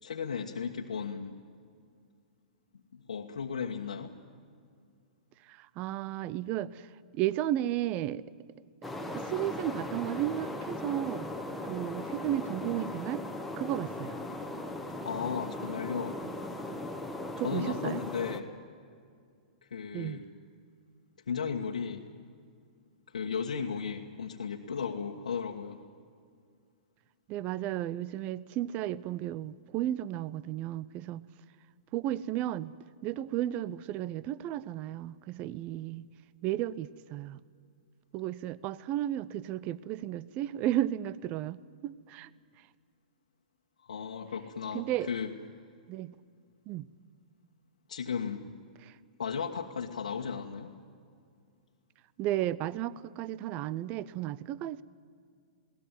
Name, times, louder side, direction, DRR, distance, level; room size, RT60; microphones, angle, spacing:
voice 1, 0.0-1.4 2.9-4.1 15.0-16.2 17.4-18.5 19.6-20.2 21.3-22.1 23.1-25.8 43.9-45.3 47.9-48.5 49.2-50.7, left 6 dB, 80° left, -2 dB, 1.4 m, -35 dB
voice 2, 5.4-8.3 9.1-11.3 11.6-13.2 13.6-14.2 17.4-18.0 19.9-20.2 27.3-31.2 31.9-32.7 33.0-36.1 36.4-37.4 38.1-42.3 42.6-42.7 44.7-45.1 45.9-46.1 46.7-46.9 48.8-49.0 52.2-54.8, right 13 dB, 35° right, 19 dB, 0.6 m, -34 dB
sound 1, 8.8-18.4, left 1 dB, ahead, 1.8 m, -38 dB
21.5 x 18.0 x 9.1 m, 2.2 s
hypercardioid pair, 115°, 4 cm